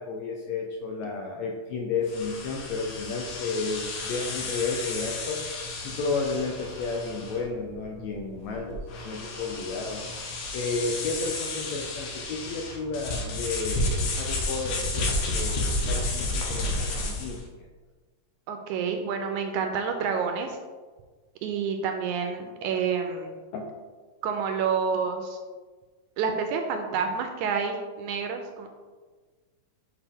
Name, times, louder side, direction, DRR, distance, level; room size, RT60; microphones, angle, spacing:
voice 1, 0.0-5.4 5.8-15.1 15.3-17.7 23.5-23.6, left 4 dB, 80° left, 0 dB, 1.6 m, -32 dB
sound 1, 2.1-17.4, left 2 dB, 65° left, 1.7 m, -32 dB
voice 2, 18.5-20.6 21.4-23.4 24.2-25.4 26.2-28.7, right 6 dB, 80° right, 5 dB, 1.8 m, -28 dB
7.0 x 4.5 x 3.5 m, 1.4 s
omnidirectional pair, 3.7 m